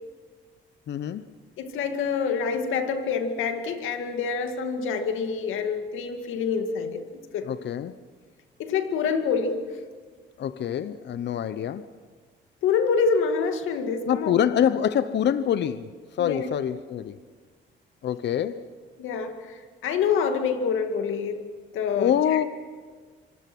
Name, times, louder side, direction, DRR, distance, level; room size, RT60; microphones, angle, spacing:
voice 1, 0.9-1.3 7.4-7.9 10.4-11.9 14.1-15.9 16.2-17.2 18.0-18.6 21.9-22.4, left 9 dB, 60° left, 0.8 m, -25 dB
voice 2, 1.6-7.0 7.3-7.5 8.6-9.7 12.6-14.3 16.2-16.5 19.0-21.5 21.7-22.4, left 5 dB, 85° left, 2.2 m, -26 dB
26.0 x 25.5 x 6.2 m
cardioid pair, 90°, 20 cm